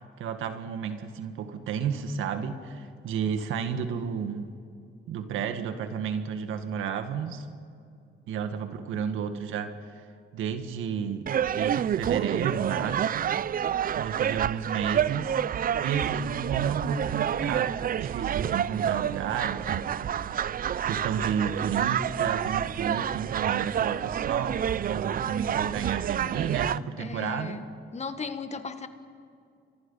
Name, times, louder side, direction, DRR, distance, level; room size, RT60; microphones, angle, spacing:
voice 1, 0.2-4.5 5.1-7.5 8.3-10.1 10.3-15.4 15.8-20.3 20.9-27.6, right 7 dB, 85° right, 8 dB, 1.9 m, -32 dB
sound 1, 11.3-26.8, right 9 dB, 45° right, 0.5 m, -28 dB
voice 2, 27.0-27.6 27.9-28.9, left 5 dB, 35° left, 9 dB, 1.8 m, -36 dB
29.5 x 24.0 x 5.7 m, 2.5 s
cardioid pair, 90°, 20 cm